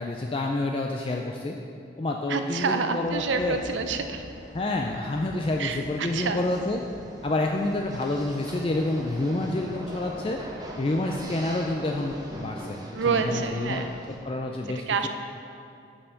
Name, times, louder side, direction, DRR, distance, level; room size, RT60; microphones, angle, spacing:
voice 1, 0.0-1.6 2.0-3.6 4.5-6.8 7.2-10.4 10.8-13.9 14.2-15.1, left 2 dB, 30° left, 1 dB, 0.4 m, -28 dB
voice 2, 2.3-4.2 5.6-6.4 9.3-9.5 11.2-11.5 12.9-13.9 14.9-15.1, right 5 dB, 80° right, 7 dB, 0.6 m, -28 dB
sound 1, 3.0-14.2, equal, 20° right, 0.8 m, -42 dB
7.0 x 5.5 x 6.5 m, 2.5 s
head